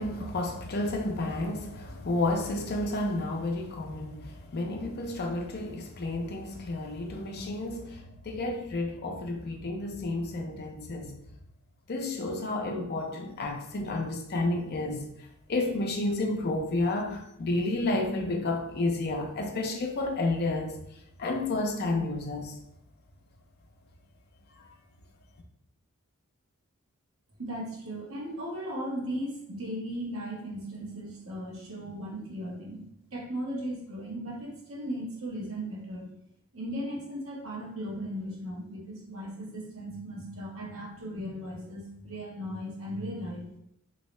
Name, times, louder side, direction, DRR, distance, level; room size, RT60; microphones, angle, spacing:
voice 1, 0.0-11.2 11.9-15.1 15.5-20.8 21.2-22.6, left 2 dB, 45° left, 0.5 m, -31 dB
voice 2, 27.4-32.8 33.1-36.0 36.5-43.4, equal, 65° right, 1.0 m, -37 dB
3.0 x 2.7 x 3.1 m
head